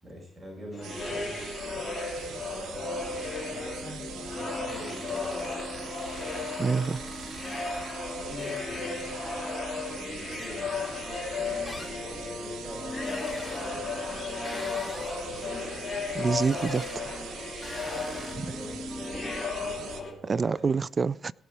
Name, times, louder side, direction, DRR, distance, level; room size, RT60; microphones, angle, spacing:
voice 1, 0.0-1.4 2.1-5.9 8.2-9.2 9.9-11.1 11.4-16.3 17.9-19.3 19.6-20.7, equal, 10° right, 5.8 m, -45 dB
sound 1, 0.7-20.1, left 3 dB, 25° left, 3.3 m, -35 dB
sound 2, 0.8-20.0, right 7 dB, 75° right, 1.3 m, -43 dB
sound 3, 4.7-8.0 8.4-9.4 10.3-10.6 11.6-12.2 13.0-13.7 14.4-15.3 16.4-17.0 17.6-18.3, left 1 dB, 10° left, 1.9 m, -46 dB
voice 2, 6.6-7.1 16.1-16.9 18.4-18.5 20.3-21.3, right 5 dB, 35° right, 0.3 m, -27 dB
17.5 x 6.0 x 5.0 m
cardioid pair, 90°, 0 cm